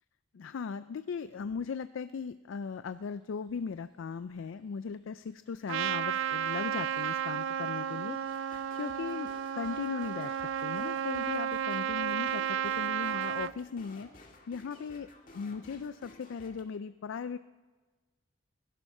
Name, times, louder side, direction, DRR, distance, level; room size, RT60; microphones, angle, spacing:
voice 1, 0.3-8.2 8.4-10.4 10.6-15.1 15.3-17.4, left 5 dB, 75° left, 14 dB, 0.4 m, -38 dB
sound 1, 3.0-9.8, left 3 dB, 25° left, 2.9 m, -62 dB
Trumpet, 5.7-13.5, right 8 dB, 70° right, 0.4 m, -33 dB
sound 2, 8.2-16.6, left 2 dB, 40° left, 2.0 m, -55 dB
20.5 x 12.0 x 5.5 m, 1.3 s
head